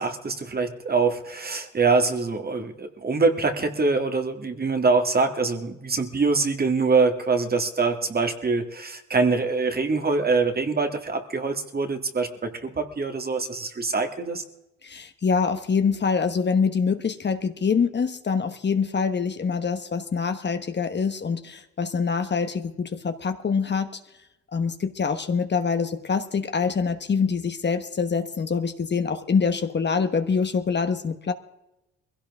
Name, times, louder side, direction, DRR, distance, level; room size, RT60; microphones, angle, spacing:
voice 1, 0.0-14.4, right 4 dB, 30° right, 6 dB, 1.9 m, -24 dB
voice 2, 14.8-24.0 24.5-31.3, left 5 dB, 35° left, 8 dB, 1.2 m, -25 dB
21.5 x 16.5 x 3.6 m, 0.94 s
cardioid pair, 90°, 30 cm